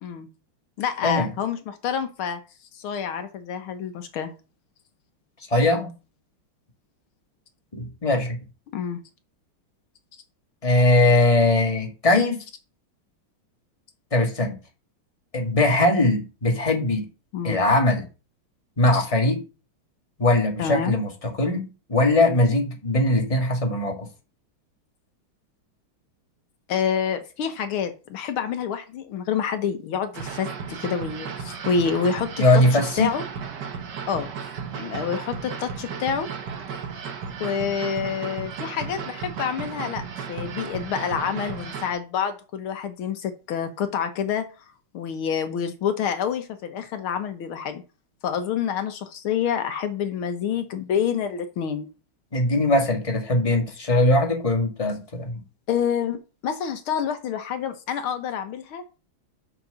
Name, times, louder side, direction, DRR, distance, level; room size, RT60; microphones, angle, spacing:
voice 1, 0.8-2.4 2.7-4.3 8.7-9.0 17.3-17.6 18.9-19.1 20.6-21.0 26.7-33.2 34.1-34.5 34.8-36.3 37.4-40.0 40.3-44.5 44.9-47.8 48.2-51.9 55.7-58.8, left 7 dB, 80° left, 1.9 m, -27 dB
voice 2, 5.5-5.9 7.7-8.4 10.6-12.4 14.1-14.6 15.3-17.1 17.4-18.0 18.8-19.4 20.2-21.6 21.9-24.1 32.4-33.1 52.3-55.4, left 2 dB, 15° left, 2.0 m, -20 dB
sound 1, 30.1-41.9, right 6 dB, 55° right, 1.7 m, -34 dB
6.7 x 6.1 x 6.8 m
omnidirectional pair, 2.3 m